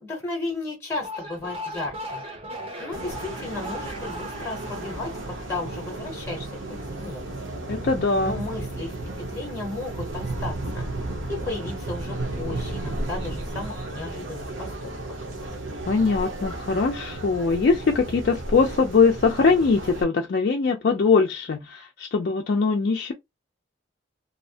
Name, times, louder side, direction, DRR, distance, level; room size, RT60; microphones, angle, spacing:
voice 1, 0.0-2.2 2.8-5.1 5.5-7.4 8.2-10.9 11.3-14.9, left 3 dB, 10° left, 0.7 m, -34 dB
sound 1, 0.9-6.2, equal, 30° right, 0.6 m, -38 dB
sound 2, 2.9-20.0, right 2 dB, 70° right, 0.8 m, -34 dB
voice 2, 7.7-8.4 15.9-23.1, left 4 dB, 50° left, 0.3 m, -22 dB
2.6 x 2.0 x 2.7 m
head